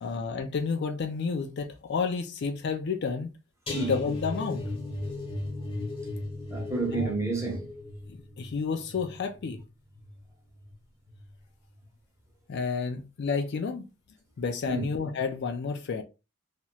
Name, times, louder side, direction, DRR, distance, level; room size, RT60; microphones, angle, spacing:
voice 1, 0.0-3.3 3.7-4.6 6.9-7.1 8.1-9.6 12.5-13.9 14.4-16.0, left 5 dB, 50° left, 0.4 m, -30 dB
sound 1, 3.7-10.7 11.1-11.4 11.7-11.8, left 2 dB, 25° left, 0.7 m, -37 dB
voice 2, 6.5-7.7 14.7-14.9, right 3 dB, 15° right, 1.0 m, -30 dB
3.0 x 2.8 x 2.2 m
head